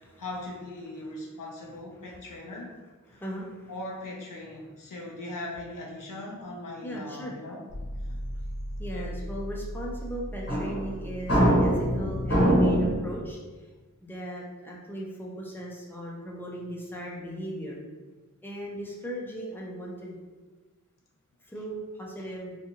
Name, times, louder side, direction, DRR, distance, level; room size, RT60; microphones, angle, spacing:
voice 1, 0.0-2.7 3.1-3.2 3.7-8.2 8.9-9.1, left 1 dB, 85° left, -1 dB, 0.6 m, -40 dB
voice 2, 3.1-3.7 6.8-7.3 8.8-13.4 14.0-17.8 18.4-20.2 21.5-22.6, equal, 5° left, -3 dB, 0.6 m, -37 dB
sound 1, 7.7-13.0, equal, 45° left, 0.9 m, -26 dB
2.6 x 2.4 x 2.8 m, 1.3 s
wide cardioid pair, 65°, 32 cm